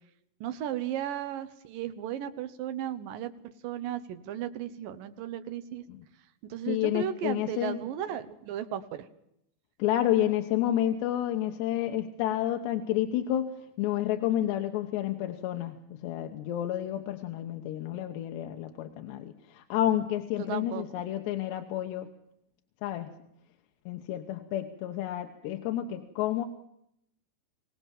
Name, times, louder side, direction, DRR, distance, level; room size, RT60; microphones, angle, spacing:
voice 1, 0.4-3.3 3.6-5.8 6.4-9.1 20.4-20.8, right 10 dB, 70° right, 10 dB, 2.2 m, -35 dB
voice 2, 6.7-7.8 9.8-13.5 13.8-22.1 22.8-23.1 23.9-26.5, left 12 dB, 75° left, 6 dB, 3.1 m, -30 dB
24.5 x 18.0 x 7.3 m, 0.75 s
omnidirectional pair, 5.2 m